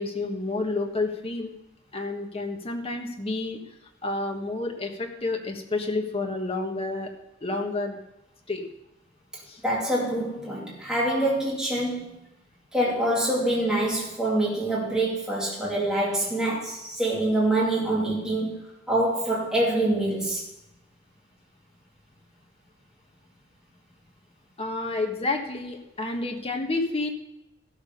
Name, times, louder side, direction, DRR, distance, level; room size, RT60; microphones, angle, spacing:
voice 1, 0.0-1.5 1.9-3.6 4.0-7.1 7.4-8.0 8.5-8.6 9.5-9.6 24.6-27.1, left 2 dB, 30° left, 3 dB, 1.5 m, -29 dB
voice 2, 9.6-12.1 12.7-18.6 18.9-20.4, right 1 dB, 5° right, -5 dB, 2.6 m, -25 dB
14.5 x 6.8 x 5.4 m, 0.87 s
head